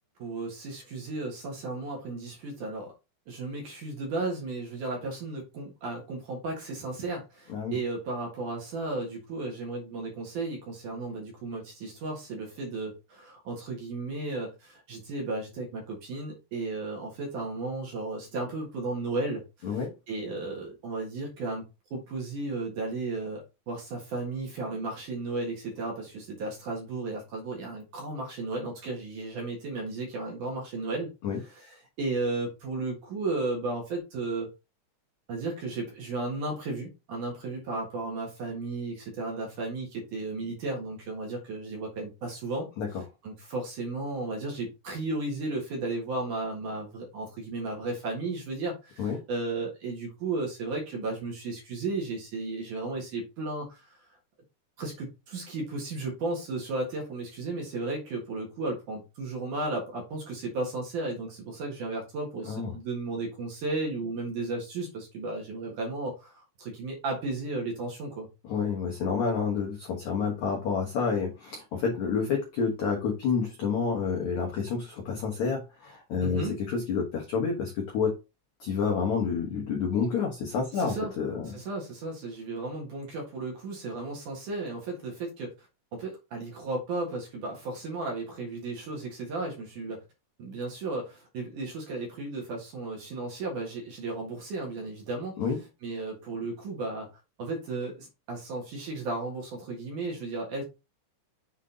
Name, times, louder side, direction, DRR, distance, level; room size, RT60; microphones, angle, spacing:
voice 1, 0.2-2.9 3.3-21.6 21.9-34.5 35.3-43.0 43.2-54.0 54.8-68.3 76.2-76.6 80.7-81.1 81.4-90.0 90.4-95.4 95.8-97.1 97.4-100.6, right 3 dB, 60° right, 0 dB, 2.4 m, -34 dB
voice 2, 68.5-78.1 78.6-81.5 95.4-95.6, left 5 dB, 85° left, 0 dB, 1.6 m, -29 dB
7.3 x 3.9 x 3.8 m, 0.27 s
omnidirectional pair, 5.3 m